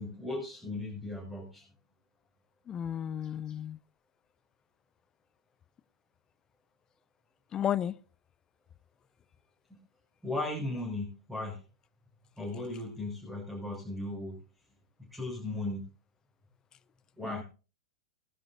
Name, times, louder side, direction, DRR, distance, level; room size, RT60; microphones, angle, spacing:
voice 1, 0.0-1.6 10.2-11.6 12.4-14.4 15.0-15.9 17.2-17.4, left 2 dB, ahead, 7.2 m, -37 dB
voice 2, 2.7-3.8 7.5-7.9 17.3-17.4, left 10 dB, 25° left, 0.6 m, -33 dB
19.0 x 13.0 x 2.8 m
figure-of-eight pair, 90°, 3 cm